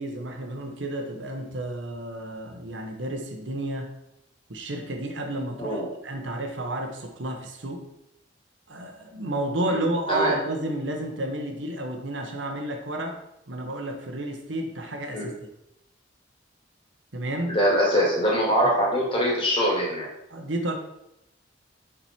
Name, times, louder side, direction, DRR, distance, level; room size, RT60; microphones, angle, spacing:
voice 1, 0.0-3.9 4.5-7.9 8.7-13.2 13.5-15.3 17.1-17.6 20.3-20.8, right 1 dB, 75° right, 4 dB, 1.1 m, -31 dB
voice 2, 9.7-10.4 15.1-15.2 17.5-20.1, equal, 30° left, -3 dB, 2.5 m, -23 dB
7.3 x 5.1 x 4.4 m, 0.85 s
head